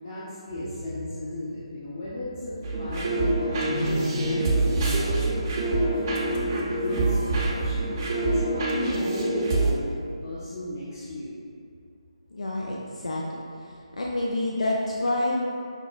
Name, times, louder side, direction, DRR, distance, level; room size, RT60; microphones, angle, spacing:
voice 1, 0.0-5.5 5.8-11.4, left 1 dB, 35° left, -11 dB, 0.6 m, -36 dB
sound 1, 2.6-9.7, right 2 dB, 30° right, 0.6 m, -25 dB
voice 2, 12.3-13.4 14.0-15.3, left 1 dB, 85° left, -3 dB, 0.4 m, -28 dB
5.6 x 2.1 x 2.4 m, 2.3 s
figure-of-eight pair, 160°, 3 cm